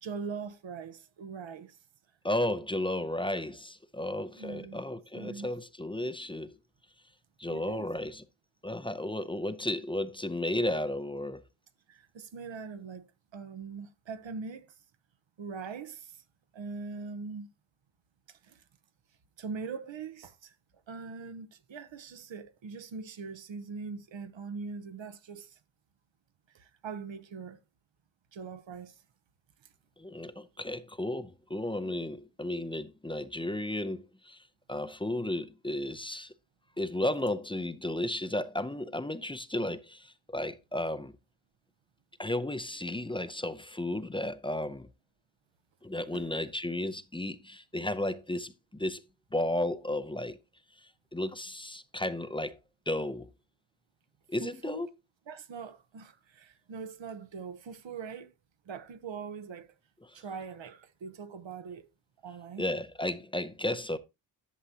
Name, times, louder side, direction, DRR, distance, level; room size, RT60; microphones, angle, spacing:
voice 1, 0.0-1.8 4.3-4.8 5.1-5.5 7.5-7.9 11.9-14.7 15.4-16.2 16.5-17.5 18.3-18.6 19.4-20.5 20.9-25.6 26.5-27.6 28.3-29.0 46.1-46.3 54.4-54.8 55.3-58.3 58.7-59.7 60.1-61.9 62.2-62.7, right 5 dB, 65° right, 1.0 m, -42 dB
voice 2, 2.2-6.5 7.4-8.2 8.6-11.4 30.0-34.4 34.7-36.3 36.8-41.1 42.2-44.9 45.8-49.0 49.3-50.4 51.1-52.6 52.9-53.3 54.3-54.9 62.6-64.0, left 1 dB, 10° left, 0.5 m, -33 dB
11.0 x 7.4 x 2.8 m
wide cardioid pair, 145°, 48 cm